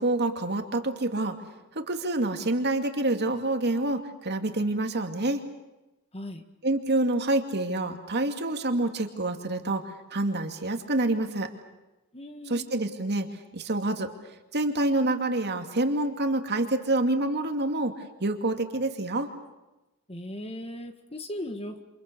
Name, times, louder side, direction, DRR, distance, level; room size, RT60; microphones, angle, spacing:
voice 1, 0.0-1.4 1.7-5.4 6.6-11.5 12.5-13.3 13.5-14.1 14.5-19.3, right 2 dB, 50° right, 5 dB, 2.5 m, -27 dB
voice 2, 12.1-12.8 20.1-21.8, left 1 dB, 25° left, 7 dB, 1.9 m, -38 dB
28.5 x 27.5 x 7.0 m, 1.0 s
head